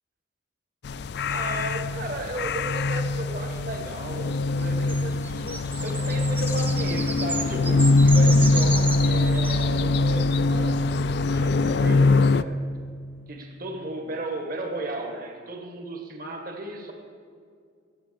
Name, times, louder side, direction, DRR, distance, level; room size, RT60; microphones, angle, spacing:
sound 1, 0.8-12.4, left 2 dB, 55° left, 0.3 m, -22 dB
voice 1, 1.3-5.5 5.8-10.8 11.2-12.6 13.3-16.9, right 2 dB, 45° right, 2 dB, 1.6 m, -35 dB
sound 2, 4.6-9.7, right 3 dB, 10° right, 0.4 m, -34 dB
13.0 x 9.0 x 6.8 m, 2.2 s
head